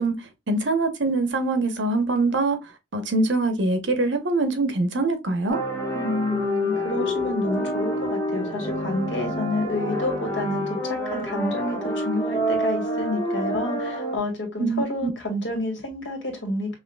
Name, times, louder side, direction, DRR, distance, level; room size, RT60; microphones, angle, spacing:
voice 1, 0.0-5.6 14.6-15.1, right 3 dB, 85° right, 0.9 m, -24 dB
sound 1, 5.5-14.2, equal, 15° left, 1.3 m, -27 dB
voice 2, 5.9-16.7, left 1 dB, 85° left, 1.8 m, -29 dB
5.7 x 2.5 x 2.2 m
head